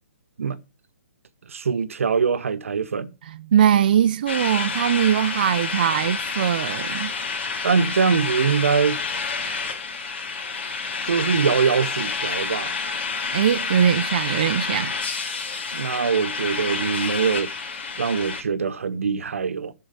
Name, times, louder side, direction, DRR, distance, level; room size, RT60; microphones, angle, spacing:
voice 1, 1.5-3.1 7.6-9.0 11.1-12.7 15.7-17.5 18.0-19.7, right 6 dB, 85° right, 1.0 m, -23 dB
voice 2, 3.3-7.1 13.3-14.9, right 9 dB, 40° right, 0.5 m, -21 dB
sound 1, 4.3-18.4, left 4 dB, 50° left, 2.6 m, -29 dB
12.5 x 4.6 x 6.7 m
hypercardioid pair, 175°, 7 cm